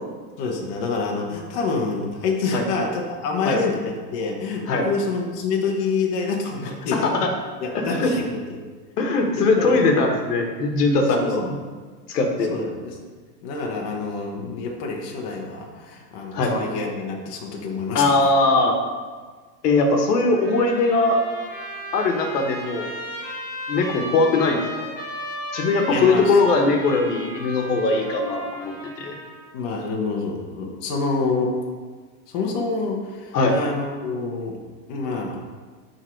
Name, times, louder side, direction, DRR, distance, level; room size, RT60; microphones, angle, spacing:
voice 1, 0.4-7.1 7.6-8.6 9.4-9.9 11.2-11.5 12.5-13.0 13.4-18.0 25.9-26.4 29.5-31.6 32.3-34.6 34.9-35.4, left 4 dB, 35° left, -1 dB, 1.1 m, -27 dB
voice 2, 6.6-7.3 7.7-8.1 9.0-11.6 12.1-12.5 16.3-16.5 17.9-18.8 19.6-21.2 21.9-22.9 23.7-24.8 25.5-29.2 33.3-33.5, left 3 dB, 70° left, 3 dB, 1.4 m, -20 dB
Trumpet, 20.3-29.5, equal, 20° left, 1.6 m, -35 dB
11.0 x 3.8 x 4.5 m, 1.5 s
supercardioid pair, 160°, 49 cm